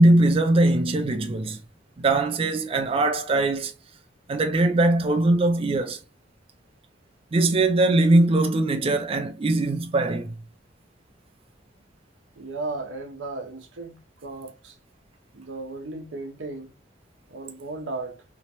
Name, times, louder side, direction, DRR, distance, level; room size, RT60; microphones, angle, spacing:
voice 1, 0.0-1.6 2.0-3.7 4.3-6.0 7.3-10.3, right 2 dB, 30° right, 0.3 m, -21 dB
voice 2, 12.4-14.8 15.3-16.7 17.3-18.2, right 2 dB, 85° right, 0.6 m, -35 dB
3.0 x 2.1 x 2.8 m
head